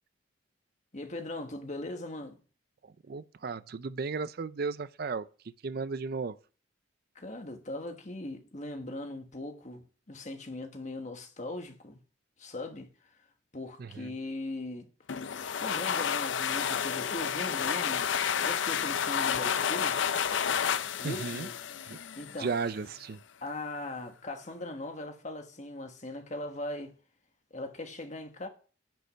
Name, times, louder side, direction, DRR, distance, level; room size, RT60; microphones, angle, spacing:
voice 1, 0.9-2.4 7.1-12.0 12.4-12.9 13.5-14.9 15.6-18.1 18.4-20.0 21.0-21.5 22.2-22.6 23.4-27.0 27.5-28.5, left 1 dB, 40° left, 1.4 m, -39 dB
voice 2, 3.1-5.2 5.6-6.4 13.8-14.1 21.0-21.5 21.9-22.0 22.4-23.2, right 4 dB, 50° right, 0.4 m, -34 dB
sound 1, 15.1-22.6, left 8 dB, 75° left, 0.5 m, -30 dB
10.5 x 5.4 x 5.6 m
head